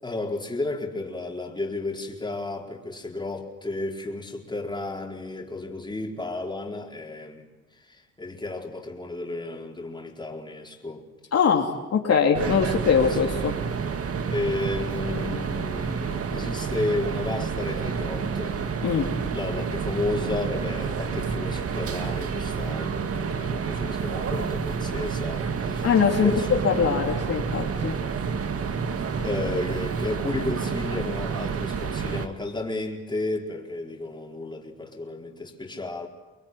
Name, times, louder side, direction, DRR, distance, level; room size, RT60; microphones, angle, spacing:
voice 1, 0.0-7.5 7.8-11.1 13.1-13.3 14.3-18.6 19.3-25.9 26.2-26.5 29.2-36.1, left 2 dB, 15° left, 4.6 m, -32 dB
voice 2, 11.3-13.5 18.8-19.1 25.8-27.9, left 6 dB, 55° left, 3.4 m, -22 dB
sound 1, 12.3-32.3, right 6 dB, 50° right, 2.0 m, -29 dB
25.5 x 21.5 x 9.5 m
cardioid pair, 90°, 30 cm